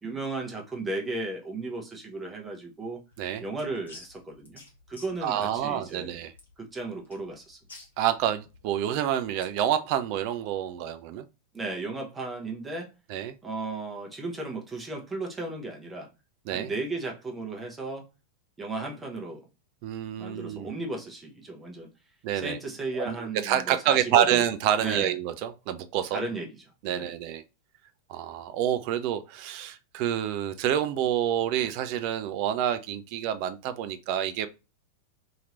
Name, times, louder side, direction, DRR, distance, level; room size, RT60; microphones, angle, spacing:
voice 1, 0.0-3.0 3.4-4.6 4.9-6.2 6.6-7.6 11.5-12.9 13.4-16.1 16.5-18.1 18.6-19.5 20.2-21.9 22.3-24.4 24.8-25.1 26.1-26.5 26.9-27.1, right 2 dB, 15° right, 0.8 m, -35 dB
sound 1, 3.1-9.6, left 3 dB, 70° left, 1.2 m, -52 dB
voice 2, 5.2-6.3 8.0-11.2 13.1-13.3 16.5-16.7 19.8-20.7 22.2-22.6 22.9-26.2 26.8-27.4 28.1-34.5, right 10 dB, 45° right, 0.3 m, -28 dB
2.9 x 2.9 x 2.4 m
figure-of-eight pair, 90°, 0 cm